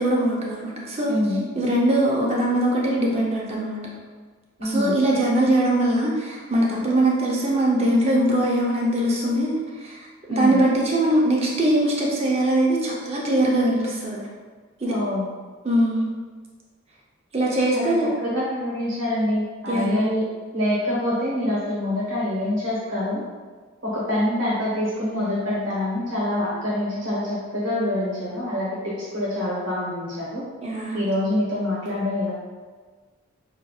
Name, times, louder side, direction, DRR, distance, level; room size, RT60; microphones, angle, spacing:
voice 1, 0.0-1.1 1.5-3.8 4.6-10.0 10.3-14.2 14.8-14.9 15.6-16.0 17.3-18.1 19.7-20.0 30.6-31.0, right 1 dB, 30° right, -3 dB, 0.6 m, -21 dB
voice 2, 1.1-1.4 4.6-5.0 10.3-10.6 14.8-15.3 17.7-20.3 20.5-23.2 23.8-30.4 30.9-32.3, left 1 dB, 65° right, -7 dB, 0.9 m, -25 dB
5.5 x 2.6 x 2.3 m, 1.5 s
head